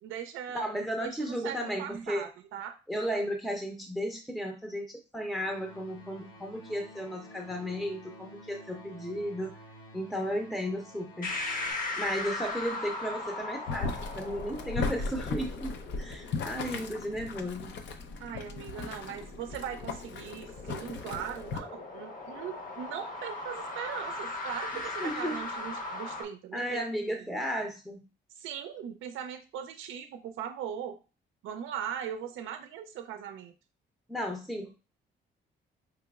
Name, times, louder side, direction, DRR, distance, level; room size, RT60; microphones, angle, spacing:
voice 1, 0.0-2.8 18.2-27.1 28.3-31.0 31.4-33.5, right 9 dB, 80° right, 6 dB, 0.5 m, -39 dB
voice 2, 0.5-2.3 2.9-9.6 9.9-11.3 12.0-17.8 25.0-25.4 26.5-28.0 34.1-34.7, equal, ahead, 2 dB, 0.6 m, -34 dB
sound 1, 5.3-11.7, equal, 85° left, 1.0 m, -51 dB
sound 2, 11.2-26.2, left 2 dB, 45° left, 0.9 m, -39 dB
Boiling, 13.7-21.6, left 4 dB, 65° left, 0.6 m, -37 dB
4.9 x 2.9 x 2.3 m, 0.32 s
cardioid pair, 90°, 20 cm